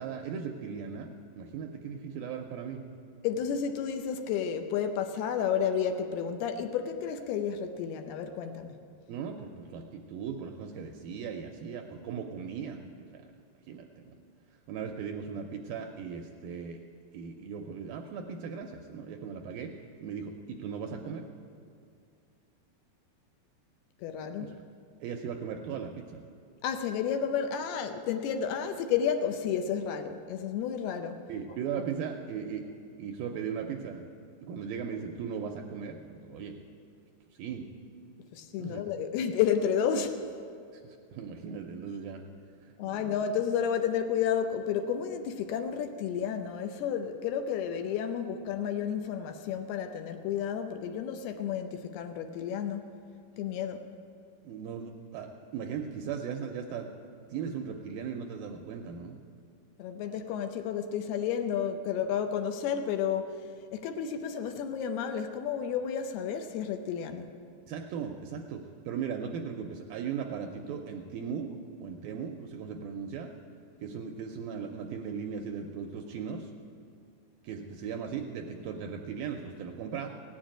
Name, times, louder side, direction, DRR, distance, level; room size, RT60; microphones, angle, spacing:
voice 1, 0.0-2.8 9.1-13.2 13.7-14.1 14.7-16.8 17.1-21.3 24.4-24.6 25.0-26.2 31.3-32.7 33.0-34.1 34.4-36.6 37.4-37.7 38.6-38.8 40.7-42.2 42.6-43.1 54.4-56.9 57.3-59.2 67.7-73.3 73.8-76.5 77.4-80.1, right 6 dB, 80° right, 3 dB, 2.2 m, -38 dB
voice 2, 3.2-8.7 24.0-24.5 26.6-31.2 38.3-40.3 42.8-52.8 53.4-53.8 59.8-63.4 63.7-67.3, left 8 dB, 80° left, 6 dB, 2.5 m, -31 dB
17.0 x 7.4 x 8.9 m, 2.3 s
omnidirectional pair, 4.8 m